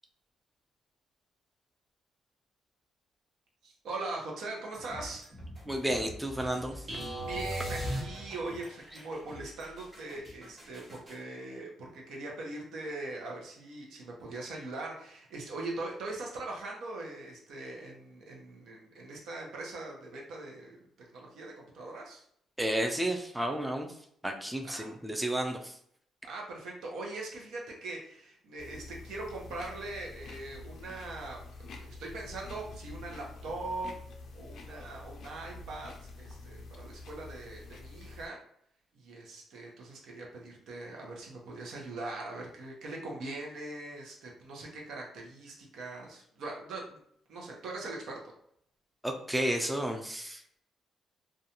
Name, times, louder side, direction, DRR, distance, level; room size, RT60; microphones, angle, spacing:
voice 1, 3.6-5.3 7.2-22.2 24.6-25.0 26.2-33.9 34.3-38.4 38.9-47.0 47.3-48.2, right 2 dB, 75° right, -1 dB, 0.7 m, -41 dB
sound 1, 4.7-11.2, left 1 dB, 35° right, 1.2 m, -49 dB
voice 2, 5.7-6.9 22.6-23.9 24.2-25.8 49.0-50.4, right 1 dB, 5° right, 2 dB, 0.4 m, -32 dB
sound 2, 6.9-8.6, right 1 dB, 55° right, 1.0 m, -36 dB
sound 3, 28.6-38.3, left 3 dB, 65° left, 0.4 m, -47 dB
2.5 x 2.2 x 2.8 m, 0.68 s
cardioid pair, 90°, 0 cm